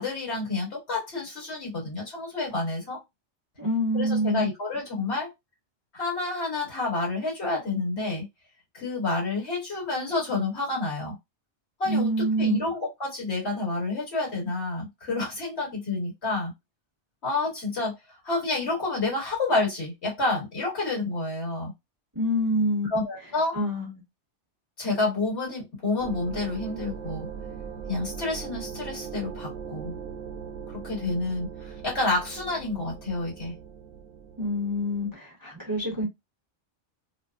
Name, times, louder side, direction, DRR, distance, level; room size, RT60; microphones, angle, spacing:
voice 1, 0.0-3.0 3.9-5.3 5.9-8.3 8.7-11.2 11.8-16.5 17.2-17.9 18.2-21.7 22.8-23.6 24.8-27.3 27.9-29.9 30.7-33.5, left 3 dB, 65° left, 1.7 m, -29 dB
voice 2, 3.6-4.5 11.8-12.6 22.1-22.9 23.5-24.0 34.4-36.1, equal, 20° right, 0.9 m, -26 dB
sound 1, 26.0-35.1, right 7 dB, 60° right, 0.9 m, -40 dB
2.9 x 2.0 x 2.4 m
omnidirectional pair, 1.2 m